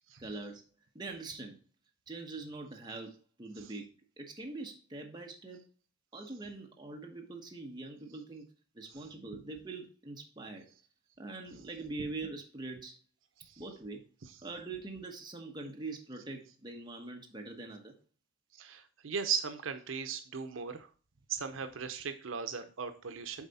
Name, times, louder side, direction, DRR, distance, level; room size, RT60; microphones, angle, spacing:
voice 1, 0.2-0.6 0.9-1.6 2.1-3.9 4.2-5.6 6.1-8.4 8.7-10.7 11.2-13.0 13.6-14.0 14.4-17.9, right 3 dB, 20° right, 1 dB, 1.1 m, -43 dB
voice 2, 18.5-20.9 21.3-23.5, right 6 dB, 80° right, 8 dB, 0.7 m, -37 dB
7.2 x 4.1 x 4.1 m, 0.37 s
head